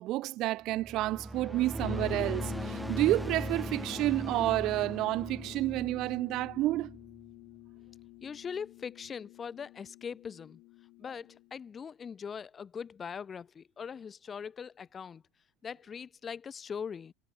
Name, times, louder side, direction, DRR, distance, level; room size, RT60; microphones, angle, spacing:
voice 1, 0.0-6.9, right 17 dB, 50° right, 0.6 m, -30 dB
sound 1, 0.7-7.3, right 1 dB, 5° right, 2.8 m, -39 dB
sound 2, 1.8-11.5, left 23 dB, 60° left, 5.0 m, -46 dB
voice 2, 8.2-10.6 11.0-15.2 15.6-17.1, left 6 dB, 25° left, 3.0 m, -41 dB
supercardioid pair, 130°, 0 cm